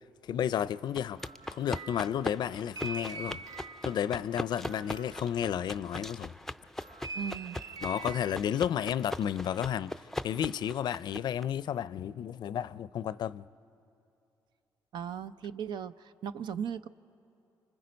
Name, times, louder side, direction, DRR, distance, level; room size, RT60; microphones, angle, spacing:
voice 1, 0.3-1.2 1.5-3.4 3.8-6.3 7.8-9.9 10.2-13.4, left 9 dB, 65° left, 0.4 m, -32 dB
sound 1, 0.6-6.3 6.8-8.3, right 3 dB, 50° right, 0.9 m, -45 dB
sound 2, 1.0-11.4, left 1 dB, 5° left, 0.5 m, -41 dB
voice 2, 7.1-7.6 14.9-16.9, right 8 dB, 75° right, 0.6 m, -37 dB
30.0 x 25.5 x 5.3 m
cardioid pair, 70°, 8 cm